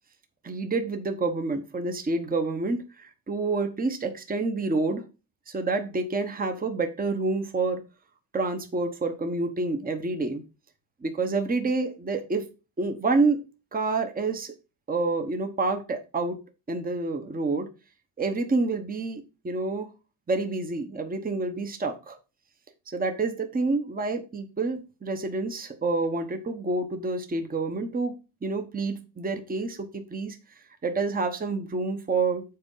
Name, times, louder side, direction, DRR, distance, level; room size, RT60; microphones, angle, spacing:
voice 1, 0.4-5.0 5.5-7.8 8.3-10.4 11.0-12.4 12.8-13.4 13.7-14.5 14.9-16.4 16.7-17.7 18.2-19.9 20.3-22.2 22.9-28.1 28.4-30.4 30.8-32.4, right 3 dB, 20° right, 6 dB, 1.0 m, -28 dB
7.8 x 4.4 x 5.5 m, 0.31 s
cardioid pair, 135°, 49 cm